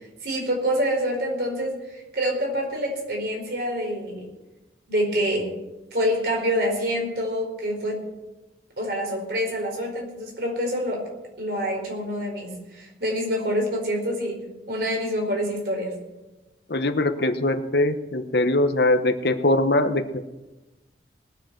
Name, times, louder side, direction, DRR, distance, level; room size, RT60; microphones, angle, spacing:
voice 1, 0.2-4.3 4.9-5.5 5.9-8.0 8.8-11.0 11.4-15.9, equal, 60° right, 0 dB, 4.7 m, -26 dB
voice 2, 16.7-20.3, left 2 dB, 65° left, 8 dB, 1.0 m, -22 dB
20.0 x 6.9 x 7.7 m, 1.1 s
head